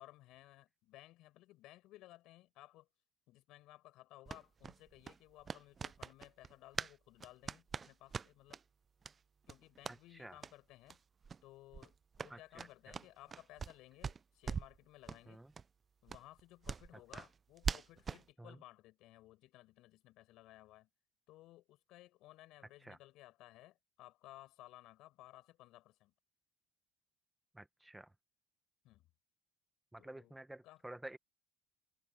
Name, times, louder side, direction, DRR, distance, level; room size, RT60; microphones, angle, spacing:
voice 1, 0.0-2.9 3.3-8.6 9.5-11.0 11.4-15.4 16.0-20.9 21.3-26.1 28.8-29.1 30.0-30.4 30.6-30.8, left 17 dB, 65° left, 5.5 m, -59 dB
sound 1, 4.3-7.0 7.2-8.6 9.0-9.2 9.4-10.0 10.4-10.5 10.9-11.0 11.2-11.4 11.7-13.8 14.0-14.8 15.1-15.2 15.5-15.6 16.1-18.3, right 6 dB, 25° right, 0.5 m, -43 dB
voice 2, 9.9-10.4 12.3-12.9 15.3-15.5 16.9-17.2 18.4-18.6 22.8-23.0 27.5-28.1 29.9-31.2, right 1 dB, 5° right, 1.1 m, -52 dB
supercardioid pair, 110°, 0 cm